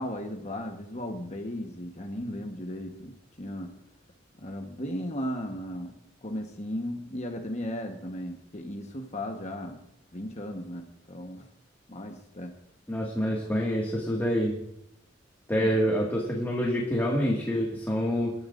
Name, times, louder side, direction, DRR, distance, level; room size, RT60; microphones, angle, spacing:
voice 1, 0.0-3.7 4.4-5.9 6.2-9.8 10.1-11.5 11.9-12.5 15.6-15.7, left 1 dB, 35° left, 3 dB, 1.2 m, -36 dB
voice 2, 12.9-14.6 15.5-18.3, equal, 10° left, -3 dB, 2.0 m, -27 dB
22.5 x 12.5 x 2.6 m, 0.76 s
head